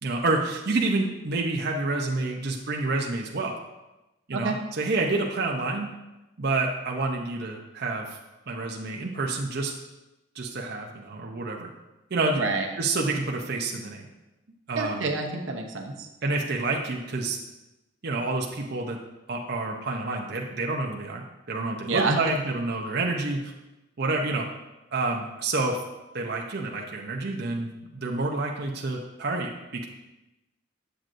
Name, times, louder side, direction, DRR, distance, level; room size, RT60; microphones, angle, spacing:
voice 1, 0.0-3.6 4.3-5.9 6.4-8.2 8.5-9.7 10.3-11.7 12.1-12.4 12.8-14.1 14.7-15.1 16.2-17.4 18.0-19.0 19.3-23.5 24.0-24.5 24.9-25.8 26.1-29.8, right 3 dB, 55° right, 0 dB, 0.7 m, -28 dB
voice 2, 12.3-12.7 14.7-16.1 21.9-22.4, right 3 dB, 90° right, 1 dB, 0.9 m, -28 dB
7.8 x 7.5 x 2.6 m, 0.99 s
head